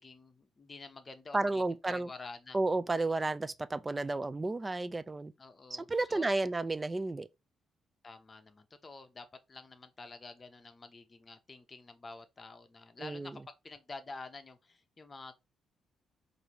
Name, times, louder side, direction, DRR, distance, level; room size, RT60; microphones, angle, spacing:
voice 1, 0.0-2.6 5.4-6.5 8.0-15.3, left 3 dB, 30° left, 0.8 m, -49 dB
voice 2, 1.3-2.1 2.5-5.3 5.7-7.3 13.0-13.4, right 2 dB, 20° right, 0.4 m, -32 dB
4.7 x 2.6 x 3.0 m
cardioid pair, 90°, 0 cm